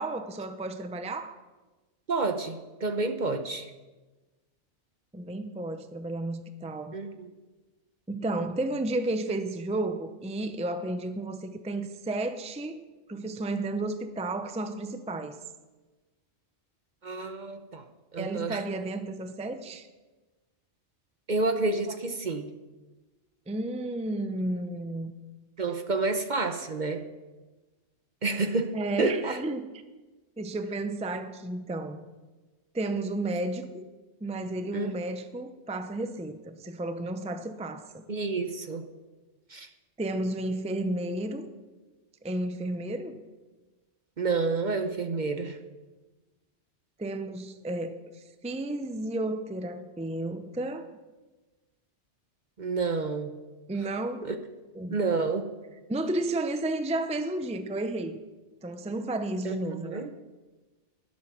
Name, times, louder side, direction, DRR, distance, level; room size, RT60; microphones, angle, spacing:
voice 1, 0.0-1.4 5.1-6.9 8.1-12.8 13.1-15.4 18.2-19.9 23.5-25.1 28.7-29.8 30.4-32.1 32.7-33.9 34.2-38.0 40.0-41.5 42.2-43.2 47.0-50.9 53.7-54.3 54.7-55.0 55.9-58.2 58.6-60.1, right 2 dB, 5° right, 8 dB, 0.6 m, -32 dB
voice 2, 2.1-3.7 6.9-7.3 17.0-17.8 18.1-18.6 21.3-22.5 25.6-27.0 28.2-28.7 29.0-29.4 34.7-34.9 38.1-38.8 39.5-39.7 44.2-45.6 52.6-53.3 54.2-54.3 54.9-55.5 59.4-60.1, right 3 dB, 45° right, 7 dB, 0.9 m, -29 dB
19.5 x 8.4 x 6.1 m, 1.2 s
omnidirectional pair, 1.2 m